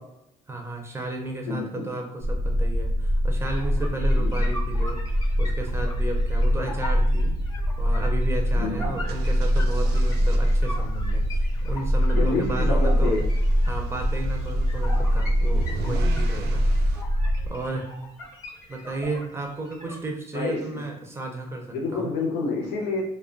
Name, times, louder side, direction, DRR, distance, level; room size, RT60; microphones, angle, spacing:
voice 1, 0.5-5.0 5.4-7.3 7.8-13.2 13.7-16.9 17.5-17.9 18.7-22.1, right 2 dB, 15° right, 2 dB, 0.5 m, -33 dB
voice 2, 1.5-1.9 4.2-4.3 6.5-6.6 8.5-8.9 12.1-13.2 20.3-20.6 21.7-23.0, left 3 dB, 85° left, 0 dB, 0.7 m, -28 dB
sound 1, 2.2-17.5, equal, 40° left, 0.4 m, -23 dB
sound 2, 3.4-20.0, left 1 dB, 20° left, 0.8 m, -42 dB
sound 3, 8.9-17.0, right 3 dB, 70° right, 0.4 m, -42 dB
2.3 x 2.2 x 2.5 m, 0.80 s
cardioid pair, 110°, 17 cm